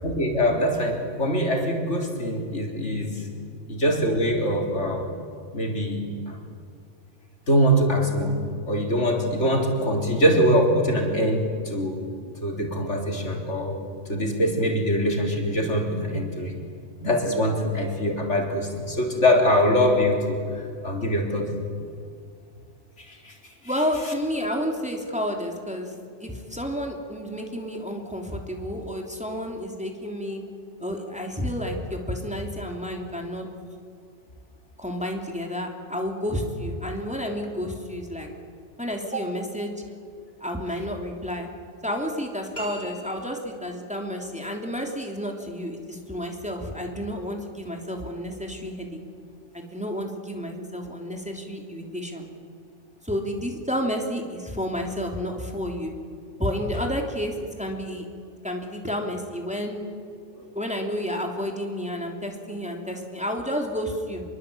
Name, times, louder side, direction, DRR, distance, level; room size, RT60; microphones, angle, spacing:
voice 1, 0.0-3.2 3.7-5.1 5.5-6.4 7.5-8.4 8.7-12.0 12.4-13.8 14.1-16.6 17.0-20.4 20.8-21.5 23.0-23.3 39.1-39.2 60.4-60.5, equal, 70° left, 2 dB, 4.0 m, -23 dB
voice 2, 23.6-25.9 26.2-30.4 30.8-33.5 34.8-38.3 38.8-39.7 40.4-41.5 41.8-49.0 49.5-52.3 53.0-55.9 56.4-58.0 58.4-59.8 60.5-64.2, equal, 5° right, 2 dB, 3.3 m, -30 dB
sound 1, 42.5-43.6, right 2 dB, 40° left, 6.5 m, -39 dB
26.5 x 23.0 x 8.7 m, 2.3 s
omnidirectional pair, 1.3 m